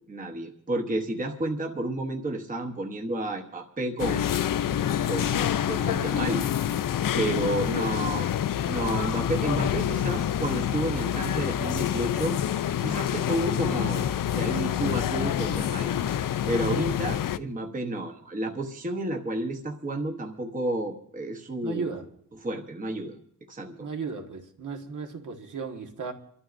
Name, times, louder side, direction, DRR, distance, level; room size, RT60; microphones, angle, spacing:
voice 1, 0.1-4.3 5.0-6.4 7.1-8.3 8.7-12.4 12.8-14.1 14.3-16.0 16.5-21.9 22.4-23.2 23.5-23.9, right 1 dB, 25° right, 2 dB, 0.9 m, -31 dB
sound 1, 4.0-17.4, left 10 dB, 85° left, 0.5 m, -27 dB
voice 2, 7.1-7.5 21.6-22.1 23.8-26.1, right 5 dB, 70° right, 3 dB, 1.5 m, -35 dB
29.0 x 12.5 x 2.6 m, 0.63 s
wide cardioid pair, 180°, 32 cm